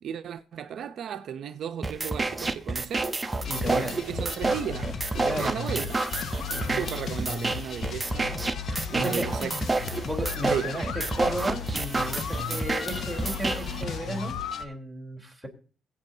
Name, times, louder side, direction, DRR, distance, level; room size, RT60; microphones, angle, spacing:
voice 1, 0.0-3.2 3.6-6.1 6.7-8.5 8.9-9.5 10.5-10.8, right 8 dB, 65° right, 0.6 m, -35 dB
sound 1, 1.8-13.8, right 3 dB, 20° right, 0.9 m, -30 dB
sound 2, 3.4-14.6, left 6 dB, 55° left, 1.0 m, -36 dB
voice 2, 3.5-3.9 5.3-5.5 6.5-6.8 8.7-9.3 10.0-15.5, equal, 5° left, 3.6 m, -34 dB
Motor vehicle (road) / Siren, 3.6-14.6, left 6 dB, 85° left, 2.7 m, -42 dB
22.5 x 8.4 x 2.8 m
cardioid pair, 90°, 0 cm